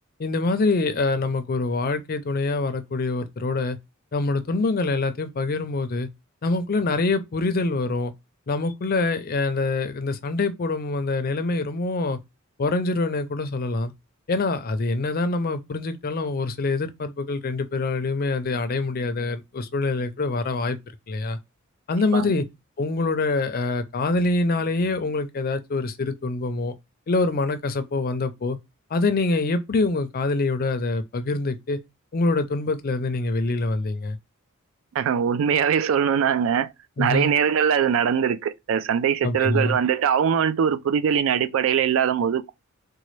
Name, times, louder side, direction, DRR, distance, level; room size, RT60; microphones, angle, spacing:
voice 1, 0.2-3.8 4.1-6.1 6.4-8.1 8.5-12.2 12.6-13.9 14.3-20.8 21.1-21.4 21.9-22.4 22.8-26.7 27.1-28.6 28.9-31.8 32.1-34.2 37.0-37.3 39.2-39.8, left 3 dB, 45° left, 0.5 m, -25 dB
voice 2, 34.9-36.7 37.0-42.5, right 8 dB, 65° right, 0.3 m, -22 dB
4.0 x 2.2 x 3.1 m
head